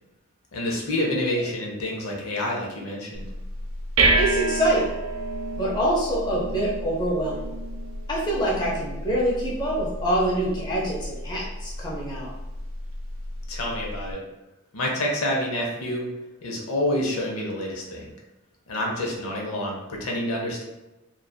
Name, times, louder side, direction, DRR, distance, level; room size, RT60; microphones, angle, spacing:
voice 1, 0.5-3.3 13.5-14.2 14.7-16.1 16.4-18.1 18.7-20.6, left 1 dB, 90° left, -1 dB, 0.6 m, -28 dB
sound 1, 3.1-14.1, right 2 dB, 70° right, 0.4 m, -30 dB
voice 2, 4.2-4.9 5.6-7.5 8.1-12.3, right 1 dB, 20° left, -5 dB, 0.5 m, -25 dB
2.6 x 2.3 x 2.2 m, 1.0 s
head